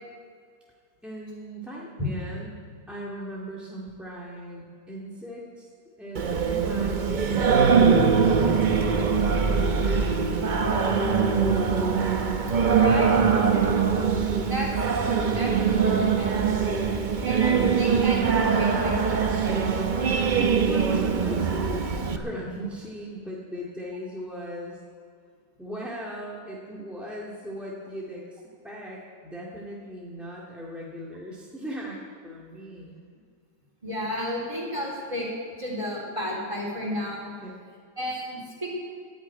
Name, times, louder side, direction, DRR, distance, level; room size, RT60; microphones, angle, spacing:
voice 1, 1.0-5.7 6.0-10.5 20.3-24.8 25.6-33.0 37.4-37.5, equal, ahead, -5 dB, 2.0 m, -38 dB
Singing, 6.1-22.2, right 5 dB, 40° right, 0.8 m, -22 dB
voice 2, 12.8-13.7 14.4-14.7 15.0-16.7 17.2-19.6 21.9-22.1 33.8-35.3 35.6-37.3 38.0-38.7, equal, 20° right, -3 dB, 3.6 m, -32 dB
12.0 x 10.0 x 9.1 m, 2.2 s
omnidirectional pair, 1.6 m